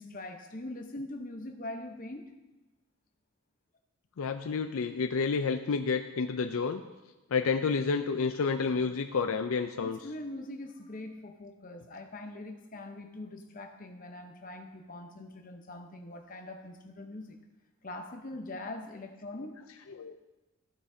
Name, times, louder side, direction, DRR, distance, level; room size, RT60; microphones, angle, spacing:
voice 1, 0.0-2.3 9.8-17.4 17.8-19.6, left 2 dB, 40° left, 4 dB, 0.9 m, -42 dB
voice 2, 4.2-6.8 7.3-10.0 19.9-20.1, left 5 dB, 70° left, 7 dB, 0.4 m, -30 dB
15.0 x 8.5 x 2.7 m, 1.1 s
head